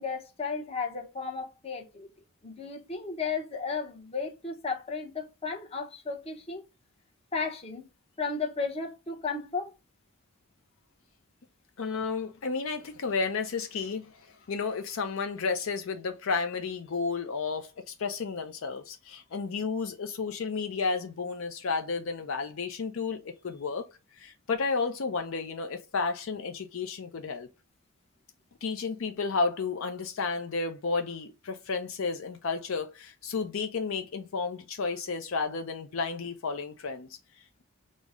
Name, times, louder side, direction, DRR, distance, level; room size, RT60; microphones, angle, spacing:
voice 1, 0.0-2.1 2.4-6.6 7.3-7.9 8.2-9.7, left 4 dB, 25° left, 0.7 m, -34 dB
voice 2, 11.8-27.5 28.6-37.6, left 4 dB, 65° left, 0.4 m, -32 dB
5.1 x 2.1 x 3.4 m
head